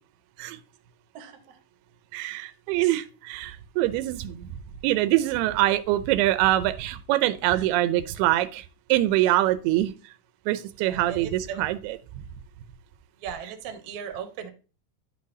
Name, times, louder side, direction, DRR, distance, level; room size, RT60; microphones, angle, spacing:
voice 1, 2.1-4.5 4.8-8.6 8.9-9.9 10.5-12.0, right 15 dB, 85° right, 13 dB, 2.6 m, -24 dB
voice 2, 10.8-11.6 13.2-14.5, right 8 dB, 65° right, 6 dB, 2.0 m, -38 dB
10.5 x 6.6 x 2.7 m, 0.35 s
omnidirectional pair, 4.5 m